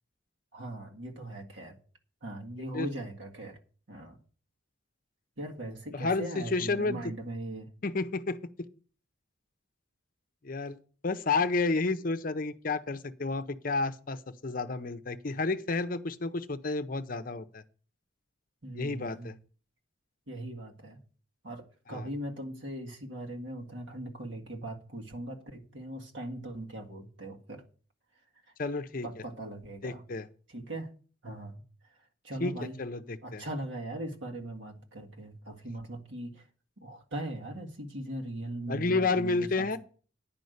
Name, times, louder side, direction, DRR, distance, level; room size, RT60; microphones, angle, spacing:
voice 1, 0.5-1.8 2.2-3.6 3.9-4.2 5.4-7.7 18.6-19.3 20.3-21.0 21.4-27.6 29.0-30.0 30.5-30.9 31.2-31.6 32.2-32.8 33.2-36.5 36.8-39.8, right 1 dB, 70° right, 1.9 m, -40 dB
voice 2, 5.9-7.0 7.8-8.7 10.4-10.8 11.0-14.2 14.4-17.6 18.7-19.3 21.9-22.1 28.6-29.1 29.8-30.3 32.4-33.4 38.7-39.8, left 3 dB, 45° left, 0.6 m, -31 dB
10.0 x 5.4 x 7.9 m
head